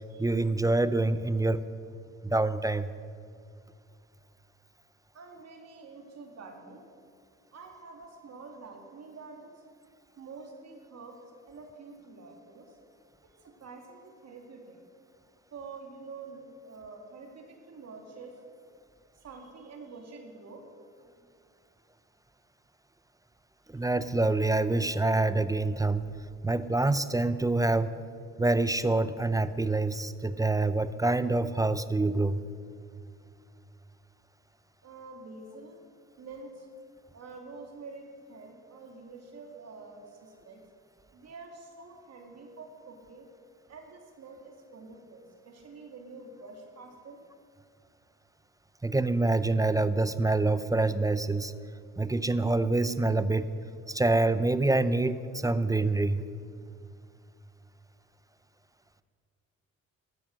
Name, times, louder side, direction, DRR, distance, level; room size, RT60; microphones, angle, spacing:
voice 1, 0.2-1.6 2.2-2.9 23.7-26.0 26.4-28.0 28.4-32.4 48.8-51.5 52.0-53.5 53.9-56.2, right 2 dB, 10° right, 14 dB, 0.5 m, -26 dB
voice 2, 5.1-6.9 7.5-9.6 10.2-11.2 11.5-12.8 13.2-14.8 15.5-18.4 19.1-20.6 34.8-35.8 36.2-36.7 37.1-40.6 41.1-43.3 43.7-47.2, right 3 dB, 55° right, 2 dB, 2.2 m, -47 dB
14.0 x 12.5 x 6.3 m, 2.2 s
cardioid pair, 90°, 30 cm